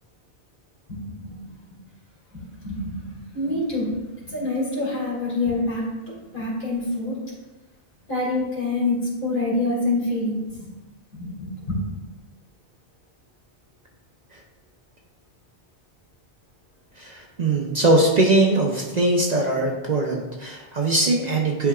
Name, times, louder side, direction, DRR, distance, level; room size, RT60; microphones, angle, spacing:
voice 1, 0.9-1.4 1.6-1.8 2.3-5.8 6.3-7.1 8.1-10.7 11.1-11.8, left 2 dB, 50° left, -5 dB, 2.6 m, -26 dB
voice 2, 17.0-21.7, right 2 dB, 45° right, 0 dB, 0.7 m, -21 dB
10.0 x 4.7 x 2.4 m, 1.2 s
omnidirectional pair, 1.1 m